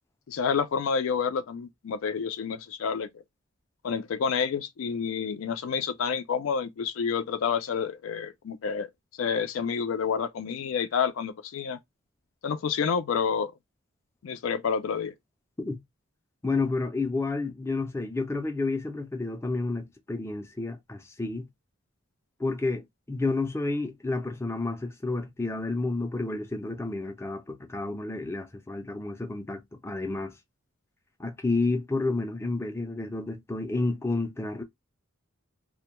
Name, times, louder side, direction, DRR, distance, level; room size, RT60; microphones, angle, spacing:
voice 1, 0.3-3.1 3.8-8.9 9.2-11.8 12.4-13.5 14.2-15.1, left 6 dB, 80° left, 0.4 m, -29 dB
voice 2, 16.4-21.5 22.4-30.3 31.2-34.6, left 3 dB, 15° left, 0.4 m, -30 dB
2.2 x 2.1 x 2.9 m
head